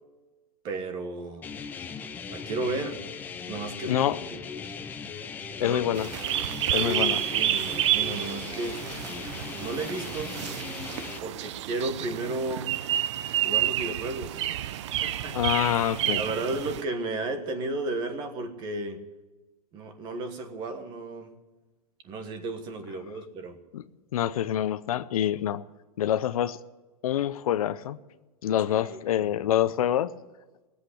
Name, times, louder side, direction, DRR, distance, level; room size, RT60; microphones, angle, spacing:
voice 1, 0.6-1.5 2.3-3.0 3.5-4.4 5.6-5.9 6.7-8.8 9.6-10.4 11.2-12.7 13.4-15.4 16.1-19.0 19.7-21.3 22.0-23.6 28.7-29.0, right 2 dB, 25° right, 1.4 m, -33 dB
sound 1, 1.4-11.2, left 6 dB, 10° left, 0.5 m, -39 dB
voice 2, 3.9-4.2 5.6-6.1 6.7-7.2 15.3-16.2 23.7-23.8 24.1-25.6 26.0-26.6 27.0-28.0 28.4-30.1, left 11 dB, 65° left, 0.7 m, -26 dB
sound 2, 5.9-16.8, right 12 dB, 50° right, 0.6 m, -30 dB
17.5 x 8.3 x 9.9 m
hypercardioid pair, 165°, 20 cm